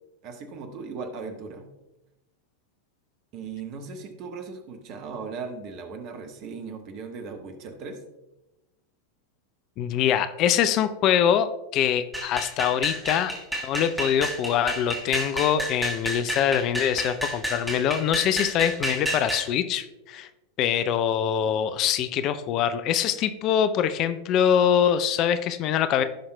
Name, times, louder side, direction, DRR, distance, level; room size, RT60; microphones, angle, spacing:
voice 1, 0.2-1.7 3.3-8.0, right 4 dB, 40° right, 6 dB, 1.2 m, -37 dB
voice 2, 9.8-13.3 13.6-20.3 20.6-26.0, left 9 dB, 35° left, 11 dB, 0.4 m, -24 dB
sound 1, 12.1-19.5, equal, 5° right, 1.5 m, -31 dB
15.5 x 5.6 x 2.2 m, 0.98 s
figure-of-eight pair, 90°, 0 cm